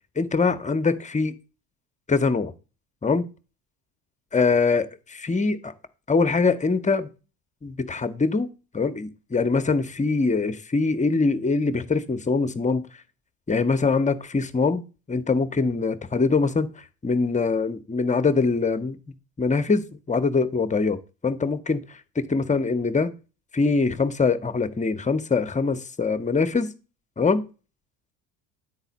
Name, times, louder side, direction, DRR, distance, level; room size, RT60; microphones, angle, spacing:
voice 1, 0.2-1.3 2.1-2.5 3.0-3.3 4.3-5.7 6.1-7.1 7.6-12.9 13.5-14.8 15.1-16.7 17.0-19.0 19.4-21.8 22.2-23.1 23.5-26.7 27.2-27.4, left 4 dB, 15° left, 0.7 m, -23 dB
10.0 x 4.1 x 4.0 m
hypercardioid pair, 65°, 49 cm